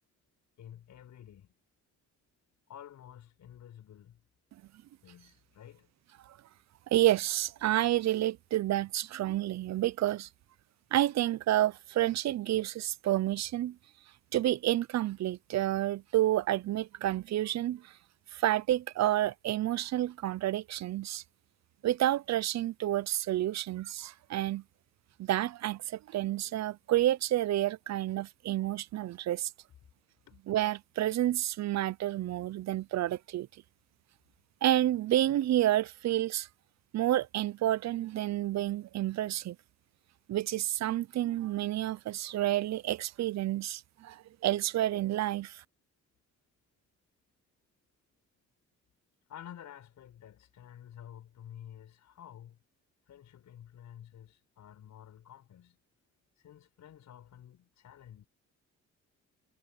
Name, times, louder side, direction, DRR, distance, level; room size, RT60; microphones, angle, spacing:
voice 1, 0.6-1.5 2.7-4.2 5.0-5.9 30.3-30.4 49.3-52.6 53.1-55.8 56.4-58.3, left 10 dB, 70° left, 6.0 m, -51 dB
voice 2, 6.9-10.3 10.9-13.8 14.3-17.9 18.3-21.2 21.8-24.6 25.2-29.5 30.5-33.5 34.6-36.5 36.9-39.6 40.3-45.6, right 13 dB, 65° right, 0.7 m, -29 dB
cardioid pair, 90°, 30 cm